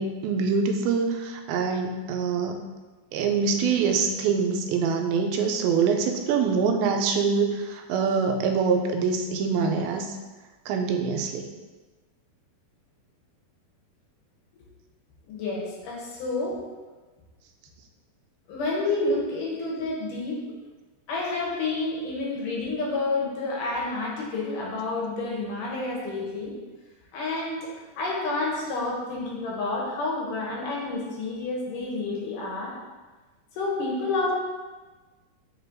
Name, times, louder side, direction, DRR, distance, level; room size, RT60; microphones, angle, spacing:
voice 1, 0.0-2.6 3.1-10.1 10.7-11.5, right 5 dB, 85° right, 4 dB, 2.5 m, -25 dB
voice 2, 15.3-16.6 18.5-20.4 21.1-26.5 27.1-32.7 33.5-34.3, left 3 dB, 70° left, -3 dB, 2.3 m, -29 dB
8.6 x 4.1 x 2.7 m, 1.3 s
omnidirectional pair, 4.2 m